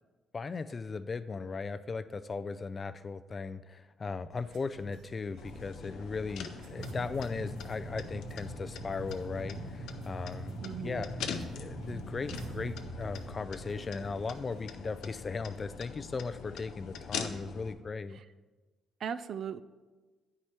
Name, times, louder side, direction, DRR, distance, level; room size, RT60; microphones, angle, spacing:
voice 1, 0.3-18.2, left 4 dB, 35° left, 13 dB, 0.4 m, -37 dB
sound 1, 4.3-14.8, right 2 dB, 85° right, 1.1 m, -44 dB
sound 2, 5.4-17.7, left 6 dB, 85° left, 0.6 m, -43 dB
voice 2, 10.6-11.1 19.0-19.6, right 7 dB, 60° right, 13 dB, 0.3 m, -37 dB
9.2 x 4.7 x 4.3 m, 1.3 s
cardioid pair, 90°, 0 cm